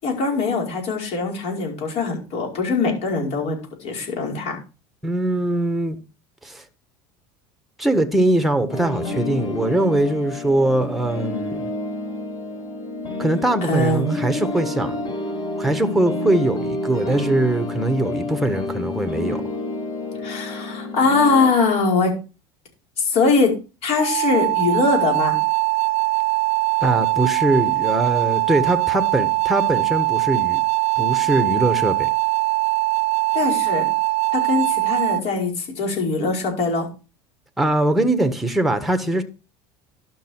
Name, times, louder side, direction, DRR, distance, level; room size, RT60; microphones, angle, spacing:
voice 1, 0.0-4.6 13.7-14.2 20.2-22.1 23.0-23.5 23.8-25.4 33.3-33.9 34.3-36.9, left 3 dB, 55° left, 5.1 m, -22 dB
voice 2, 5.0-6.0 6.4-6.6 7.8-11.7 13.2-15.0 15.6-19.4 26.8-30.6 31.0-32.1 37.6-39.2, right 1 dB, ahead, 1.4 m, -21 dB
sound 1, 8.7-21.5, left 2 dB, 40° left, 4.1 m, -29 dB
sound 2, 24.0-35.2, right 23 dB, 50° right, 0.5 m, -21 dB
12.0 x 6.3 x 4.5 m
supercardioid pair, 115°, 13 cm